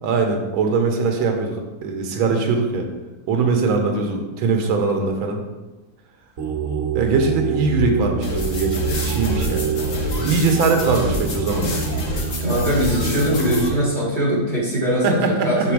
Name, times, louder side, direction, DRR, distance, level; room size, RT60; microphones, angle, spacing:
voice 1, 0.0-2.9 3.3-5.4 6.9-9.8 10.2-11.8 15.0-15.7, right 4 dB, 80° right, 4 dB, 1.5 m, -21 dB
sound 1, 6.4-13.7, right 7 dB, 55° right, 0.9 m, -26 dB
sound 2, 8.2-13.7, left 2 dB, 45° left, 1.2 m, -27 dB
voice 2, 12.4-15.7, equal, 25° left, -5 dB, 1.7 m, -21 dB
6.0 x 3.9 x 4.6 m, 1.1 s
omnidirectional pair, 2.2 m